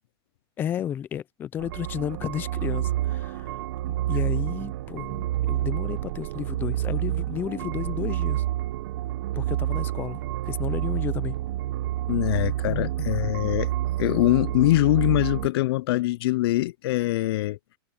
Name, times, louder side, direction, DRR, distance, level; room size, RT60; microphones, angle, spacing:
voice 1, 0.6-3.6 3.9-8.4 9.4-10.2 10.5-11.3, left 10 dB, 15° left, 0.4 m, -32 dB
sound 1, 1.6-15.5, right 13 dB, 65° right, 0.8 m, -28 dB
voice 2, 12.1-13.7 14.0-17.6, left 17 dB, 85° left, 0.4 m, -23 dB
supercardioid pair, 175°, 13 cm